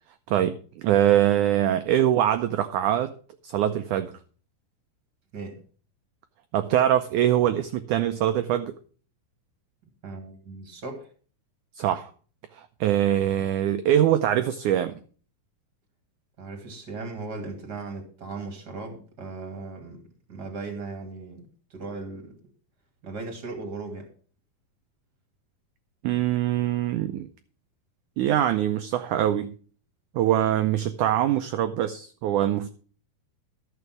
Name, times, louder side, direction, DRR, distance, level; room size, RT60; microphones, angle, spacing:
voice 1, 0.3-3.1 3.4-4.2 6.5-8.8 11.8-12.1 12.5-15.0 26.0-27.3 28.2-29.5 30.1-32.7, right 11 dB, 85° right, 9 dB, 1.7 m, -23 dB
voice 2, 10.0-11.1 16.4-20.0 20.3-22.4 23.0-24.1, right 3 dB, 30° right, 5 dB, 2.3 m, -37 dB
12.5 x 7.0 x 6.1 m, 0.42 s
omnidirectional pair, 4.3 m